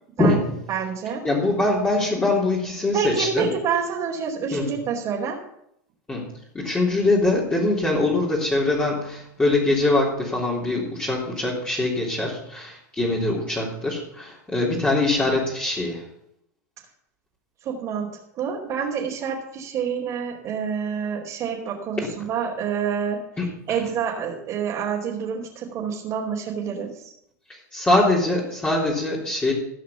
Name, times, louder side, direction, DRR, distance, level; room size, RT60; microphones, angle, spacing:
voice 1, 0.7-1.2 2.9-5.4 17.6-18.1 18.4-23.2 23.7-27.0, right 7 dB, 40° right, -4 dB, 3.3 m, -27 dB
voice 2, 1.2-3.5 4.5-4.8 6.1-16.0 23.4-23.8 27.5-29.5, left 2 dB, 15° left, -6 dB, 3.5 m, -23 dB
16.0 x 5.8 x 7.1 m, 0.76 s
supercardioid pair, 125°, 9 cm